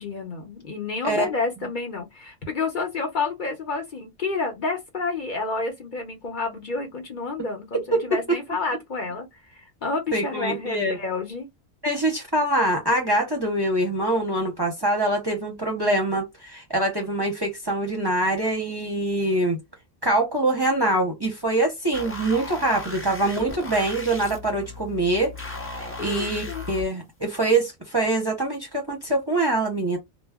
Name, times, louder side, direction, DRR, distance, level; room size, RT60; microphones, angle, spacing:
voice 1, 0.0-11.5 15.6-15.8 22.6-22.7 23.2-23.4 26.0-26.7, left 3 dB, 50° left, 0.8 m, -30 dB
voice 2, 10.1-11.0 11.8-19.6 20.0-25.3 25.8-30.0, right 2 dB, 25° right, 0.6 m, -24 dB
sound 1, 21.9-26.8, left 2 dB, 15° left, 0.4 m, -36 dB
2.2 x 2.0 x 3.4 m
omnidirectional pair, 1.1 m